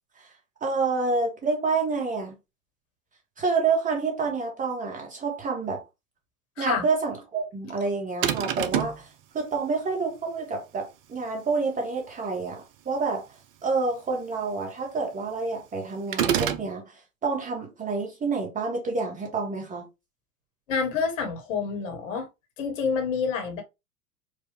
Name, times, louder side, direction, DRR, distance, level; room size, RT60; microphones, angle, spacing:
voice 1, 0.6-2.3 3.4-5.8 6.6-9.1 9.3-13.2 13.6-16.8 17.2-19.9, right 4 dB, 15° right, 1.4 m, -28 dB
sound 1, 8.2-9.0 16.1-16.7, right 9 dB, 40° right, 0.6 m, -26 dB
voice 2, 20.7-22.3 22.6-23.6, left 5 dB, 55° left, 1.5 m, -28 dB
4.7 x 2.5 x 3.2 m
figure-of-eight pair, 90°, 45 cm